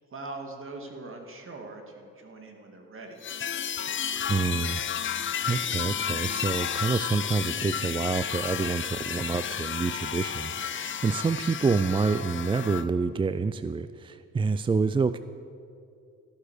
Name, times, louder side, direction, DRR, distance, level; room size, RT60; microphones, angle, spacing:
voice 1, 0.1-3.2, right 2 dB, 45° right, 3 dB, 2.4 m, -41 dB
sound 1, 3.2-12.8, left 8 dB, 40° left, 0.7 m, -32 dB
voice 2, 4.3-4.8 5.5-15.2, right 4 dB, 15° right, 12 dB, 0.3 m, -27 dB
14.0 x 12.0 x 6.7 m, 2.5 s
cardioid pair, 90°, 30 cm